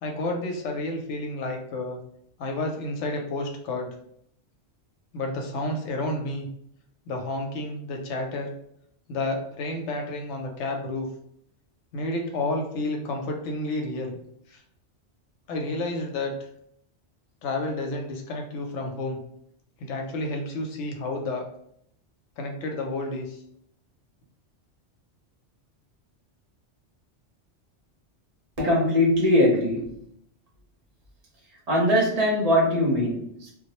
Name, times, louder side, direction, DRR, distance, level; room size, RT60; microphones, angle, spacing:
voice 1, 0.0-2.0 2.4-3.9 5.1-6.5 7.1-8.5 9.1-11.1 11.9-14.2 14.5-14.6 15.5-16.3 17.4-19.2 19.8-21.5 22.4-23.4, left 2 dB, 85° left, 2 dB, 0.9 m, -30 dB
voice 2, 28.6-29.9 31.7-33.5, left 1 dB, 40° right, -2 dB, 0.7 m, -21 dB
2.1 x 2.0 x 2.9 m, 0.71 s
omnidirectional pair, 1.2 m